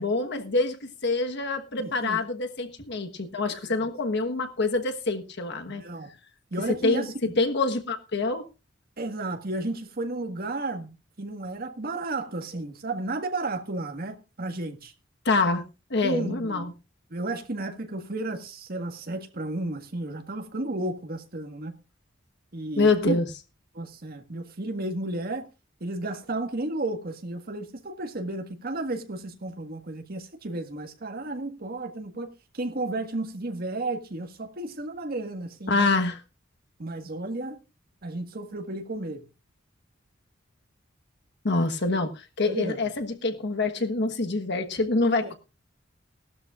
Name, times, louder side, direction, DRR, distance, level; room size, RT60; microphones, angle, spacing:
voice 1, 0.0-5.8 6.7-8.5 15.2-15.6 15.9-16.7 22.8-23.2 35.7-36.2 41.4-45.3, left 3 dB, 60° left, 1.3 m, -26 dB
voice 2, 1.8-2.2 3.6-3.7 5.7-6.1 6.5-7.3 9.0-14.9 16.0-16.7 17.1-21.7 22.5-23.1 23.7-25.5 25.8-35.9 36.8-37.6 38.0-39.2 42.5-42.8 45.2-45.3, right 2 dB, 50° right, 1.7 m, -33 dB
18.0 x 12.5 x 2.5 m
head